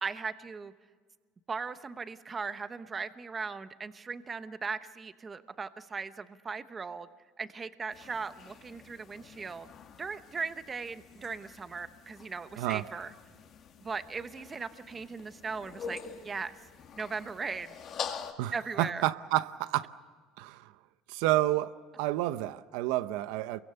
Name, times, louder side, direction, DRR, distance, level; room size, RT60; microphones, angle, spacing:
voice 1, 0.0-0.7 1.5-7.1 7.4-9.7 10.0-13.1 13.8-16.0 16.2-16.5 17.0-17.8 18.5-19.0, right 5 dB, 20° right, 0.9 m, -38 dB
sound 1, 7.9-18.3, left 7 dB, 40° left, 2.1 m, -46 dB
voice 2, 18.8-19.9 20.4-20.6 21.1-23.6, right 16 dB, 80° right, 0.8 m, -29 dB
28.5 x 23.0 x 6.9 m
cardioid pair, 145°, 0 cm